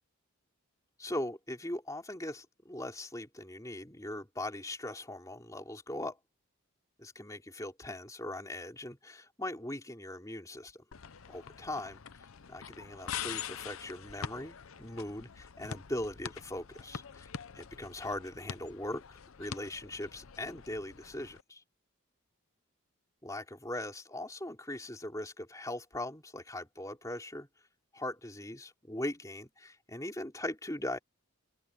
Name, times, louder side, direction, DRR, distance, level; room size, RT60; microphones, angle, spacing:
voice 1, 1.0-6.2 7.0-10.8 11.3-17.3 17.5-19.0 19.4-21.6 23.2-27.5 27.9-31.0, left 1 dB, 15° left, 3.3 m, -40 dB
sound 1, 10.9-21.4, left 7 dB, 70° left, 0.7 m, -45 dB
head